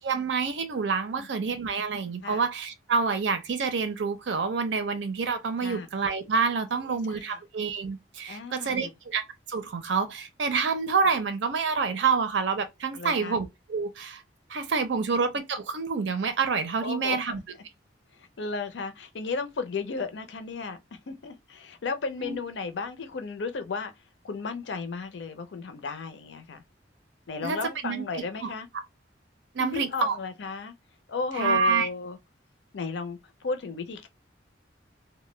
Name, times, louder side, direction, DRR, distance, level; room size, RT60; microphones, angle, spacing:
voice 1, 0.0-9.2 9.5-14.2 14.5-17.4 22.2-22.4 27.4-27.6 27.8-28.0 28.4-28.5 29.5-30.2 31.4-31.9, right 5 dB, 75° right, 0.5 m, -27 dB
voice 2, 1.2-1.5 2.2-2.4 5.6-5.9 6.8-7.4 8.3-8.9 12.9-13.4 14.9-15.0 16.8-17.2 18.1-23.9 24.2-26.6 27.3-28.7 29.6-30.7 31.1-32.2 32.7-34.1, left 4 dB, 75° left, 0.5 m, -34 dB
2.2 x 2.1 x 3.0 m
head